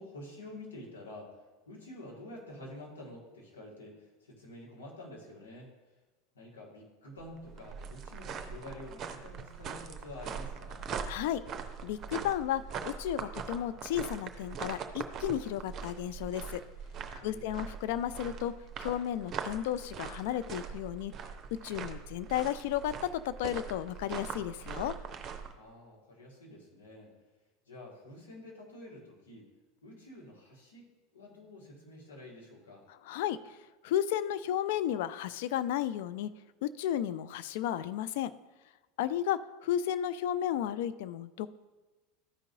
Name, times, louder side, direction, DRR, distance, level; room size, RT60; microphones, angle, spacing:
voice 1, 0.0-5.7 6.3-10.9 17.2-17.6 25.6-27.1 27.7-29.5 29.8-30.9 31.1-32.8, left 1 dB, 75° left, -3 dB, 2.2 m, -48 dB
sound 1, 7.2-25.5, right 6 dB, 35° right, 0.7 m, -42 dB
voice 2, 11.1-11.4 11.8-16.6 17.2-18.5 18.8-21.1 21.6-24.9 33.1-33.4 33.8-36.3 36.6-38.3 39.0-41.5, left 11 dB, 60° left, 14 dB, 0.3 m, -33 dB
13.0 x 5.3 x 2.7 m, 1.2 s
figure-of-eight pair, 80°, 0 cm